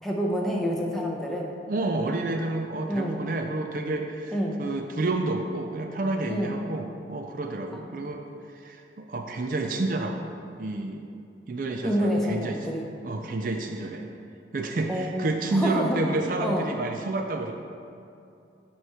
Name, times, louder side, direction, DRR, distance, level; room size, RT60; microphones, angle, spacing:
voice 1, 0.0-1.5 2.9-3.2 4.3-4.6 6.3-6.5 7.7-7.8 11.8-12.8 14.9-16.0 16.4-16.7, equal, ahead, -2 dB, 0.6 m, -28 dB
voice 2, 1.7-8.2 8.5-10.3 10.6-11.0 11.5-12.6 13.0-14.1 14.5-17.5, right 2 dB, 50° right, 4 dB, 0.4 m, -29 dB
8.0 x 3.1 x 5.5 m, 2.6 s
head